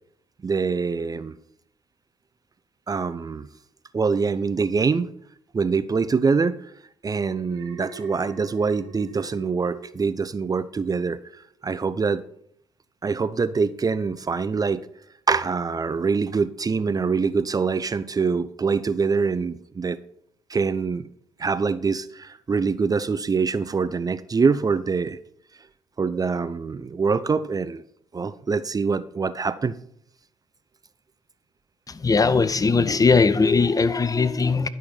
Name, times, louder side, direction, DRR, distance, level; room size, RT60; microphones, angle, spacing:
voice 1, 0.4-1.4 2.9-3.5 3.9-5.1 5.5-6.6 7.0-11.2 11.6-12.2 13.0-14.8 15.3-20.0 20.5-21.1 21.4-25.2 26.0-27.8 28.1-29.7, right 5 dB, 30° right, 0.6 m, -24 dB
Alarm, 7.4-10.8 11.1-11.5, right 4 dB, 80° right, 4.4 m, -44 dB
voice 2, 31.9-34.7, left 4 dB, 30° left, 0.7 m, -19 dB
11.5 x 6.0 x 4.9 m
hypercardioid pair, 45°, 12 cm